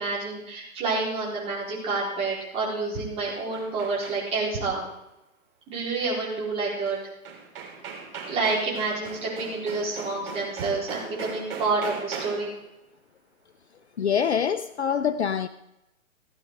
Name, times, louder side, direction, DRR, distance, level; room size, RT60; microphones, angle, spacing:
voice 1, 0.0-4.9 5.7-7.0 8.2-12.5, right 3 dB, 15° right, -6 dB, 4.3 m, -28 dB
sound 1, 2.7-4.5 6.9-7.0 7.2-12.6, right 5 dB, 40° right, 3.7 m, -39 dB
voice 2, 14.0-15.5, left 7 dB, 50° left, 12 dB, 0.6 m, -25 dB
16.5 x 10.0 x 4.7 m, 0.89 s
hypercardioid pair, 155°, 43 cm